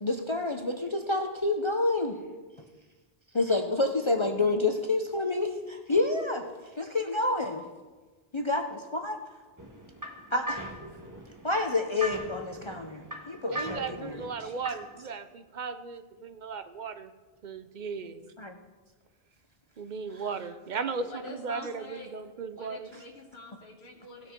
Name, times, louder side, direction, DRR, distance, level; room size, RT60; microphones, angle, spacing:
voice 1, 0.0-2.2 3.3-6.5 6.8-7.6 8.3-8.6 8.9-9.2 10.3-10.7 11.4-14.5 18.4-18.6, left 2 dB, 30° left, 4 dB, 0.6 m, -28 dB
sound 1, 9.6-15.0, right 1 dB, 20° right, 1.3 m, -40 dB
voice 2, 13.5-17.1 17.4-18.3 19.8-22.9, right 5 dB, 50° right, 11 dB, 0.7 m, -36 dB
voice 3, 20.7-22.2 22.5-24.3, left 2 dB, 75° left, 0 dB, 1.7 m, -46 dB
17.0 x 6.4 x 4.4 m, 1.3 s
omnidirectional pair, 1.1 m